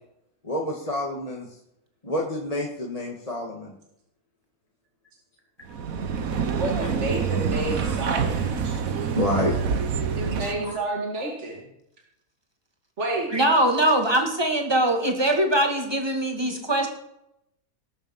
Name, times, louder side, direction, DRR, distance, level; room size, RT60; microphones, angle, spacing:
voice 1, 0.4-1.5 2.0-3.7 6.8-6.9 7.6-8.0 8.6-8.8 9.2-9.5 10.6-10.8, left 1 dB, 25° left, -1 dB, 1.8 m, -29 dB
sound 1, 5.7-10.7, right 6 dB, 70° right, 1.5 m, -27 dB
voice 2, 6.6-8.7 10.2-11.6 13.0-13.3, right 2 dB, 50° right, -1 dB, 2.7 m, -30 dB
voice 3, 13.3-16.9, right 1 dB, 15° right, 3 dB, 2.3 m, -22 dB
19.0 x 7.1 x 7.2 m, 0.80 s
omnidirectional pair, 1.5 m